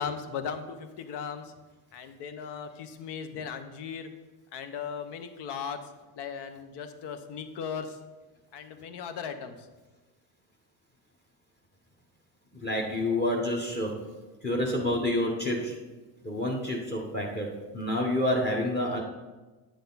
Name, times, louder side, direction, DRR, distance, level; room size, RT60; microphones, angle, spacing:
voice 1, 0.0-1.5 1.9-4.1 4.5-5.8 6.1-8.0 8.5-9.6, left 6 dB, 70° left, 9 dB, 1.0 m, -37 dB
voice 2, 12.5-13.9 14.4-15.8 16.2-17.5 17.7-19.0, left 1 dB, 20° left, 0 dB, 1.2 m, -28 dB
9.3 x 6.6 x 4.0 m, 1.2 s
cardioid pair, 115°, 43 cm